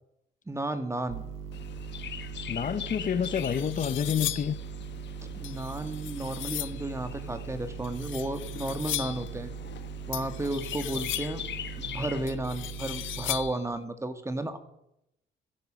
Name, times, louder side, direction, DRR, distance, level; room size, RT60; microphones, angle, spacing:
voice 1, 0.5-1.2 5.4-9.5 10.1-11.4 11.8-14.6, right 1 dB, 15° right, 9 dB, 1.9 m, -33 dB
sound 1, 1.1-13.4, right 6 dB, 90° right, 3.3 m, -40 dB
Chirp tweet, 1.5-12.4, left 9 dB, 60° left, 1.1 m, -43 dB
voice 2, 2.5-4.6, left 8 dB, 40° left, 13 dB, 0.6 m, -28 dB
sound 2, 2.7-2.8 3.2-4.6 5.4-6.8 7.8-9.3 10.1-11.5 12.3-13.7, left 15 dB, 80° left, 0.6 m, -37 dB
15.5 x 11.0 x 6.4 m, 0.83 s
cardioid pair, 90°, 20 cm